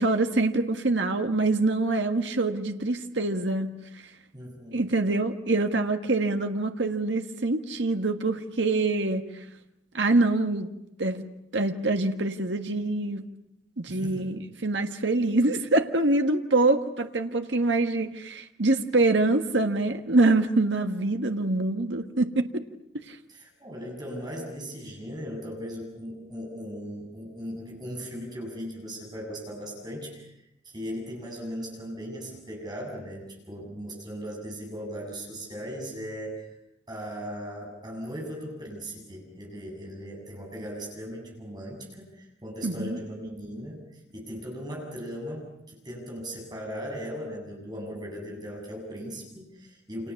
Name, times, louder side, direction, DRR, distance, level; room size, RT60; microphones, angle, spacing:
voice 1, 0.0-3.7 4.7-9.3 9.9-10.7 11.0-11.3 11.5-13.2 13.8-22.6 23.1-23.2 42.6-43.0, right 2 dB, 75° right, 6 dB, 1.6 m, -25 dB
voice 2, 4.3-4.9 13.9-14.3 23.3-30.3 30.6-36.4 36.9-43.8 44.1-50.1, equal, 25° right, 0 dB, 7.6 m, -38 dB
29.5 x 27.5 x 7.1 m, 0.86 s
head